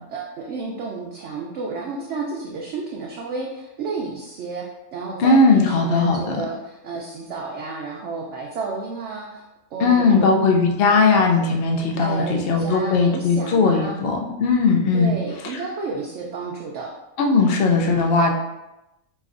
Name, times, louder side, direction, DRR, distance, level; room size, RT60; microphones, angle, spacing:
voice 1, 0.1-4.6 4.9-9.4 9.7-10.3 12.0-14.0 14.9-16.9, right 4 dB, 65° right, -2 dB, 0.7 m, -31 dB
voice 2, 5.2-6.4 9.8-15.1 17.2-18.3, left 3 dB, 70° left, 1 dB, 0.5 m, -18 dB
4.9 x 2.6 x 2.5 m, 0.95 s
omnidirectional pair, 1.5 m